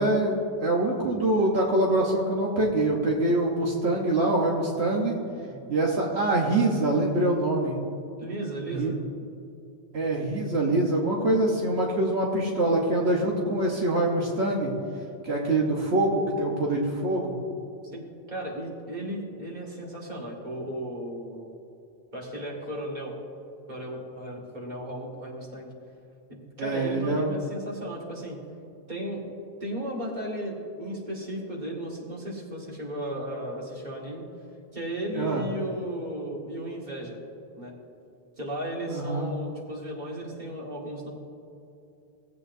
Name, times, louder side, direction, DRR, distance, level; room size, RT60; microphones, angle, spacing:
voice 1, 0.0-5.1 5.7-7.8 8.7-8.9 9.9-14.7 15.2-17.3 26.6-27.3 35.1-35.4 38.9-39.3, right 2 dB, 75° right, -2 dB, 1.3 m, -24 dB
voice 2, 5.4-5.7 8.2-9.0 17.9-21.5 22.1-23.1 23.7-25.7 26.6-28.4 28.9-29.2 29.6-34.3 34.7-37.2 37.6-37.7 38.4-41.1, right 1 dB, 45° right, -3 dB, 2.1 m, -35 dB
18.0 x 8.3 x 2.7 m, 2.7 s
omnidirectional pair, 1.1 m